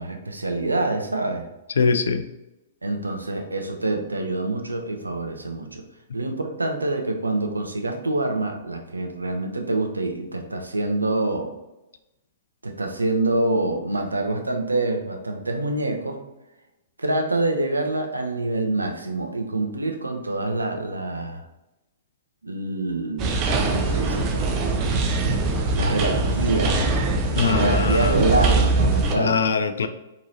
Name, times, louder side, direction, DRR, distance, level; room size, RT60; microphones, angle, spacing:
voice 1, 0.0-1.5 2.8-5.8 6.1-11.5 12.6-16.2 17.0-21.4 22.4-24.8 25.7-26.8 27.4-29.4, right 2 dB, 80° right, 4 dB, 0.7 m, -26 dB
voice 2, 1.8-2.3 27.4-28.3 29.2-29.9, left 5 dB, 65° left, 9 dB, 0.4 m, -22 dB
sound 1, 23.2-29.1, right 3 dB, 30° right, 0.6 m, -22 dB
4.4 x 3.0 x 3.9 m, 0.96 s
figure-of-eight pair, 110°, 0 cm